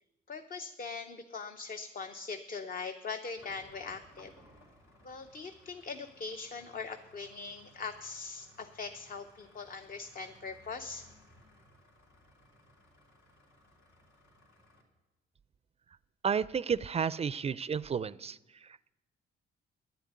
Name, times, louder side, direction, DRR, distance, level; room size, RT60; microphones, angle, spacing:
voice 1, 0.3-4.3 5.0-11.1, left 4 dB, 45° left, 7 dB, 0.8 m, -41 dB
sound 1, 3.4-14.8, left 1 dB, 85° left, 3.4 m, -61 dB
voice 2, 16.2-18.9, right 6 dB, 30° right, 18 dB, 0.4 m, -32 dB
10.5 x 8.4 x 9.3 m, 1.0 s
cardioid pair, 90°, 20 cm